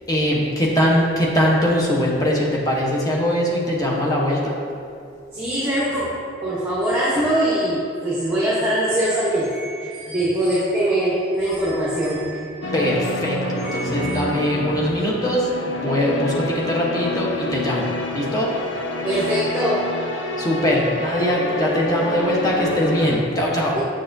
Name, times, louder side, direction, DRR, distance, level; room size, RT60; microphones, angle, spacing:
voice 1, 0.1-4.6 12.7-18.5 20.4-23.8, equal, 20° left, -4 dB, 0.8 m, -21 dB
voice 2, 5.3-12.7 13.6-14.3 19.0-20.0 23.7-23.8, right 1 dB, 10° right, -8 dB, 0.9 m, -23 dB
sound 1, 12.6-23.2, left 1 dB, 75° left, 0.6 m, -28 dB
6.6 x 6.2 x 2.6 m, 2.5 s
head